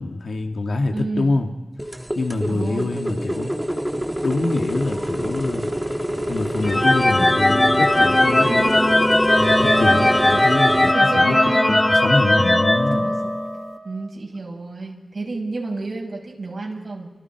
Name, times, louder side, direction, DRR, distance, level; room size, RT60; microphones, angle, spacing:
voice 1, 0.0-1.5 2.2-3.5 4.2-5.7 6.3-8.5 9.3-11.4 11.7-13.2, left 2 dB, 80° left, 4 dB, 2.3 m, -25 dB
voice 2, 0.9-1.4 2.5-2.9 8.4-9.0 10.9-11.8 12.9-13.2 13.8-17.1, right 3 dB, 70° right, -1 dB, 6.2 m, -30 dB
sound 1, 1.8-10.9, equal, 10° right, 1.9 m, -27 dB
sound 2, 6.6-13.6, left 1 dB, 25° left, 1.2 m, -18 dB
Trumpet, 9.3-14.1, right 3 dB, 50° right, 0.9 m, -30 dB
29.5 x 25.5 x 4.8 m, 1.2 s
cardioid pair, 50°, 0 cm